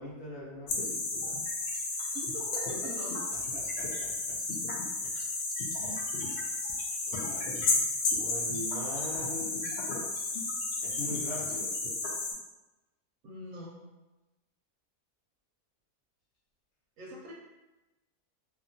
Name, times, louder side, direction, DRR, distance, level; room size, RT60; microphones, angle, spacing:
voice 1, 0.0-1.4 3.5-4.4 5.7-6.2 7.0-7.8 8.1-9.8 10.8-11.7, equal, 50° left, -6 dB, 0.9 m, -42 dB
sound 1, 0.7-12.3, left 3 dB, 80° left, 0.5 m, -32 dB
voice 2, 2.1-3.2 13.2-13.8 17.0-17.3, right 1 dB, 65° right, -2 dB, 0.8 m, -43 dB
2.8 x 2.3 x 2.6 m, 1.0 s
omnidirectional pair, 1.6 m